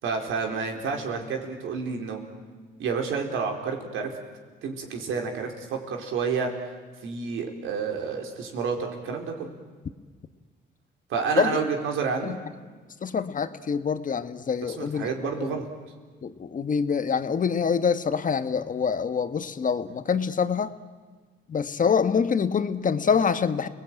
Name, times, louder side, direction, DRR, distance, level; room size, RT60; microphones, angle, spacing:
voice 1, 0.0-2.2 2.8-4.1 4.6-6.5 7.0-9.5 11.1-12.4 14.6-15.7, right 5 dB, 85° right, 2 dB, 4.4 m, -29 dB
voice 2, 13.0-15.1 15.4-15.5 16.2-20.7 21.5-23.7, left 6 dB, 40° left, 10 dB, 1.5 m, -25 dB
30.0 x 19.5 x 9.1 m, 1.4 s
cardioid pair, 90°, 20 cm